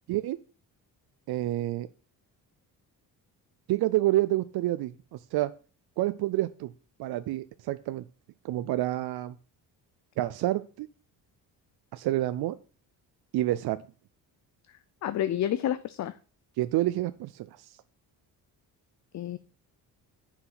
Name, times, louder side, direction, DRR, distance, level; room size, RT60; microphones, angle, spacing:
voice 1, 1.3-1.9 3.7-4.9 5.3-5.5 6.0-6.7 7.0-8.0 8.4-9.4 10.2-10.9 11.9-12.6 13.3-13.8 16.6-17.7, right 15 dB, 75° right, 12 dB, 0.6 m, -28 dB
voice 2, 14.7-16.2 19.1-19.4, left 11 dB, 45° left, 14 dB, 0.5 m, -30 dB
8.0 x 5.9 x 5.9 m, 0.36 s
cardioid pair, 135°, 38 cm